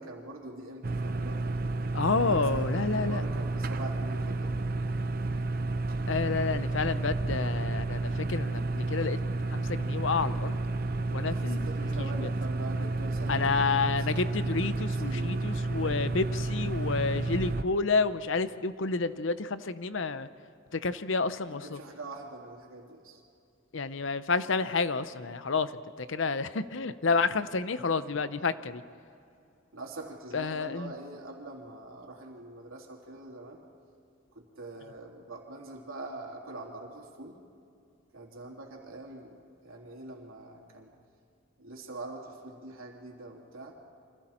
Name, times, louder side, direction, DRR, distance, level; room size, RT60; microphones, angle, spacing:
voice 1, 0.0-1.6 2.1-4.6 11.3-13.7 14.0-14.1 14.4-15.6 21.5-23.2 29.7-33.6 34.3-37.4 38.1-40.9 41.6-43.7, right 2 dB, 80° right, 0 dB, 3.3 m, -44 dB
sound 1, 0.8-17.6, right 2 dB, 45° right, 0.7 m, -31 dB
voice 2, 1.9-3.2 6.1-9.2 9.5-10.6 11.1-11.6 12.0-12.1 13.3-20.3 20.7-21.8 23.7-25.7 26.0-28.8 30.3-30.9, left 4 dB, 65° left, 13 dB, 0.7 m, -29 dB
28.5 x 25.0 x 4.4 m, 2.5 s
head